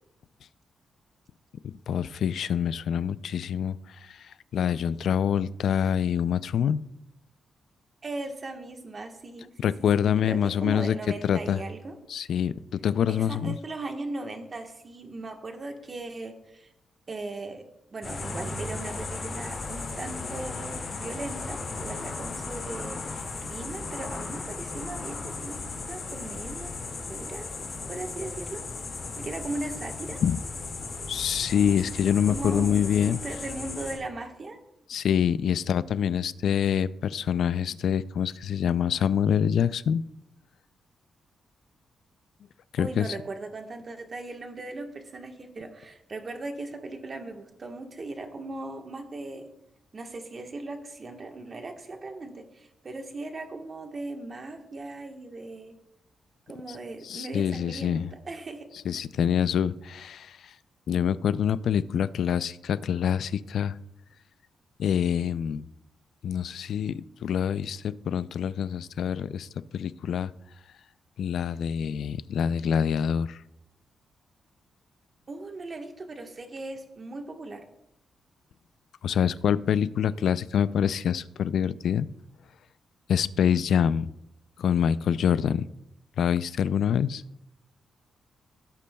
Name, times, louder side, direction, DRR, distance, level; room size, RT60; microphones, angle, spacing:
voice 1, 1.9-3.8 4.1-4.2 4.5-6.8 9.6-10.9 11.2-11.6 12.1-13.6 30.2-30.4 31.1-33.2 34.9-40.0 42.7-43.1 57.0-58.1 58.9-60.4 60.9-63.7 64.8-65.6 66.2-69.5 69.7-70.3 71.2-73.4 79.0-82.1 83.1-84.1 84.6-85.7 86.2-87.2, left 8 dB, 75° left, 16 dB, 0.3 m, -26 dB
voice 2, 8.0-9.7 10.2-12.0 13.1-16.7 17.1-25.6 25.9-26.7 27.1-27.6 27.9-28.6 29.2-30.2 32.3-34.6 42.8-49.5 49.9-55.8 56.5-58.0 58.3-58.7 75.3-77.6, right 2 dB, 35° right, 4 dB, 1.3 m, -38 dB
sound 1, 18.0-34.0, left 3 dB, 45° left, 2.0 m, -36 dB
17.0 x 8.3 x 2.3 m, 0.83 s
cardioid pair, 115°, 0 cm